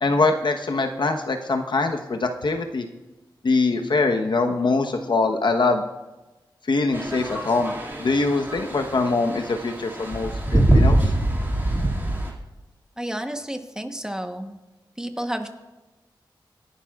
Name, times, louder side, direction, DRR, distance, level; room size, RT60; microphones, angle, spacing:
voice 1, 0.0-2.8 3.4-5.8 6.7-11.0, left 3 dB, 65° left, 4 dB, 1.1 m, -23 dB
sound 1, 6.9-12.3, right 1 dB, 25° right, 2.2 m, -23 dB
voice 2, 13.0-14.6 15.0-15.5, right 1 dB, 10° right, 5 dB, 1.1 m, -31 dB
26.5 x 11.0 x 2.4 m, 1.1 s
wide cardioid pair, 105°, 9 cm